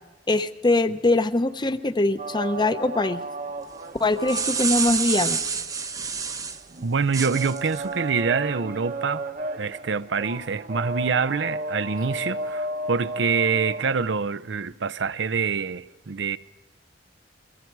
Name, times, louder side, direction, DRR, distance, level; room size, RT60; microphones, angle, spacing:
voice 1, 0.3-3.2 4.0-5.4, left 2 dB, 25° left, 0.8 m, -22 dB
sound 1, 2.2-14.1, right 2 dB, 45° right, 1.0 m, -34 dB
sound 2, 4.0-6.6 7.1-7.8, right 5 dB, 20° right, 0.7 m, -27 dB
voice 2, 6.8-9.3 9.6-16.4, right 5 dB, 70° right, 0.6 m, -26 dB
29.0 x 23.0 x 4.7 m
head